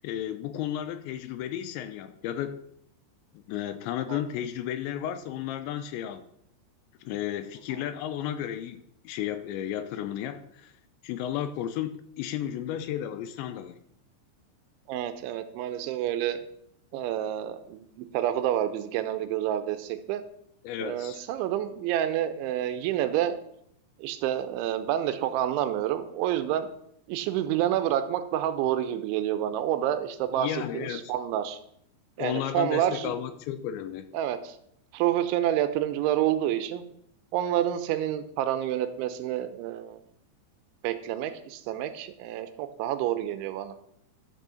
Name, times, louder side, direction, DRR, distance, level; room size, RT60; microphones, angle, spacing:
voice 1, 0.0-2.6 3.5-6.2 7.0-10.7 11.0-13.8 20.6-21.3 30.3-31.1 32.2-34.1, left 11 dB, 80° left, 11 dB, 2.8 m, -33 dB
voice 2, 14.9-16.4 16.9-20.2 20.8-23.4 24.0-26.7 27.1-31.6 32.2-33.1 34.1-34.6 34.9-36.8 37.3-40.0 40.8-43.7, right 11 dB, 80° right, 10 dB, 3.1 m, -28 dB
12.0 x 6.5 x 7.0 m, 0.73 s
omnidirectional pair, 5.5 m